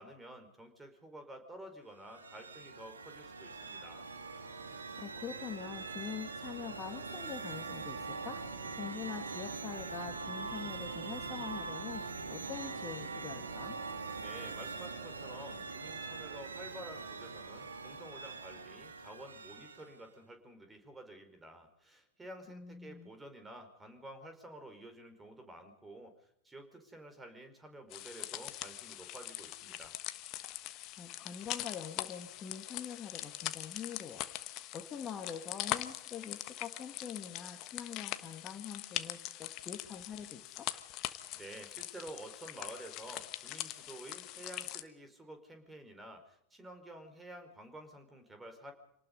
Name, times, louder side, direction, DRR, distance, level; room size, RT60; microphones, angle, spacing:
voice 1, 0.0-4.1 14.2-29.9 41.1-48.7, right 1 dB, 10° right, 7 dB, 5.0 m, -51 dB
sound 1, 1.9-20.1, right 4 dB, 70° right, 2.7 m, -43 dB
voice 2, 5.0-8.4 8.8-12.0 12.3-13.8 22.5-23.1 30.9-34.2 34.7-40.7, left 7 dB, 25° left, 5 dB, 2.3 m, -44 dB
sound 2, 27.9-44.8, left 15 dB, 40° left, 1.3 m, -42 dB
27.0 x 19.0 x 5.4 m, 0.76 s
figure-of-eight pair, 90°, 0 cm